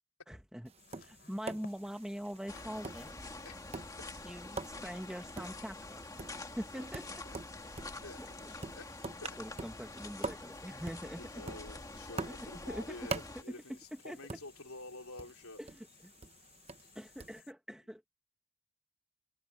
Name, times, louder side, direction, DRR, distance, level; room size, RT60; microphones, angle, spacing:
voice 1, 0.3-0.7 1.0-3.1 4.2-6.0 6.6-7.1 8.2-8.5 9.4-11.2 12.3-13.0 13.5-13.8 14.0-14.2 15.6-16.1 16.9-18.0, equal, 5° right, 1.2 m, -43 dB
Tap, 0.7-17.4, right 3 dB, 30° right, 0.8 m, -46 dB
sound 1, 0.8-17.5, left 8 dB, 45° left, 5.8 m, -62 dB
sound 2, 2.5-13.4, left 2 dB, 15° left, 2.0 m, -47 dB
voice 2, 3.4-4.2 6.7-6.9 7.2-7.4 8.0-8.9 9.2-9.4 11.0-15.6, left 2 dB, 75° left, 3.2 m, -50 dB
open air
head